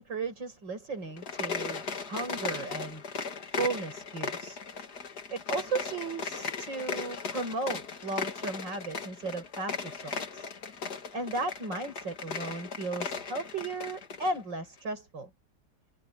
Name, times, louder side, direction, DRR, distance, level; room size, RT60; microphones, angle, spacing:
voice 1, 0.0-3.0 3.5-4.6 5.3-10.5 11.1-15.3, right 3 dB, 85° right, 7.3 m, -35 dB
sound 1, 1.1-14.4, left 5 dB, 60° left, 2.5 m, -37 dB
omnidirectional pair, 1.9 m